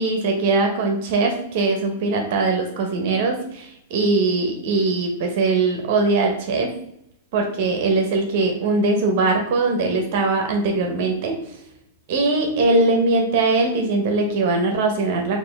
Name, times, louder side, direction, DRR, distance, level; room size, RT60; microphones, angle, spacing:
voice 1, 0.0-6.7 7.3-11.4 12.1-15.4, right 3 dB, 55° right, 3 dB, 0.8 m, -21 dB
4.1 x 2.5 x 3.4 m, 0.77 s
hypercardioid pair, 135°, 0 cm